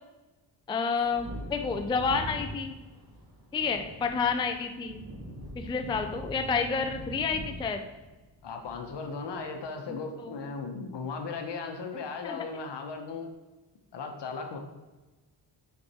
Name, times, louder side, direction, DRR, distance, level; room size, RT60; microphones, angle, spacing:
voice 1, 0.7-2.7 3.5-5.1 5.6-7.8 9.9-10.3 12.2-12.5, left 5 dB, 10° left, 6 dB, 0.3 m, -30 dB
Wind / Thunder, 1.0-9.3 9.5-9.6, equal, 40° right, 2.2 m, -42 dB
voice 2, 8.4-13.3 13.9-14.6, left 4 dB, 65° left, 4 dB, 1.1 m, -37 dB
6.5 x 4.6 x 4.2 m, 1.2 s
cardioid pair, 120°, 45 cm